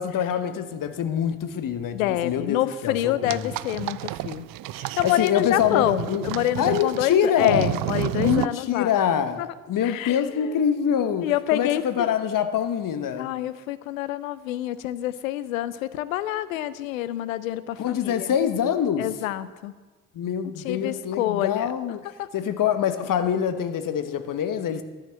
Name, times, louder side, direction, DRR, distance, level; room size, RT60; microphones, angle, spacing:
voice 1, 0.0-3.5 5.0-6.3 6.6-7.7 8.1-13.3 17.8-19.1 20.1-22.0 22.3-24.8, left 8 dB, 55° left, 10 dB, 1.2 m, -25 dB
voice 2, 1.9-4.5 4.7-8.9 9.4-9.5 9.8-10.5 11.2-12.1 13.2-18.3 19.0-19.7 20.6-21.7 22.2-22.3, left 13 dB, 85° left, 16 dB, 0.6 m, -27 dB
sound 1, 3.3-8.5, right 17 dB, 55° right, 0.5 m, -31 dB
11.5 x 8.9 x 7.8 m, 1.3 s
hypercardioid pair, 40°, 40 cm